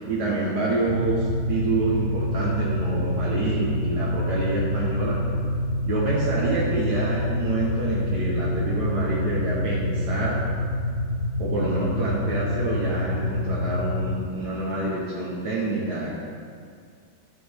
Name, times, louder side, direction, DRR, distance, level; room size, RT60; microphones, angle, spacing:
voice 1, 0.0-5.2 5.8-10.4 11.4-16.2, right 2 dB, 75° right, -6 dB, 1.9 m, -27 dB
sound 1, 0.9-14.2, left 1 dB, 65° left, 1.1 m, -27 dB
13.0 x 7.9 x 3.5 m, 2.3 s
omnidirectional pair, 1.8 m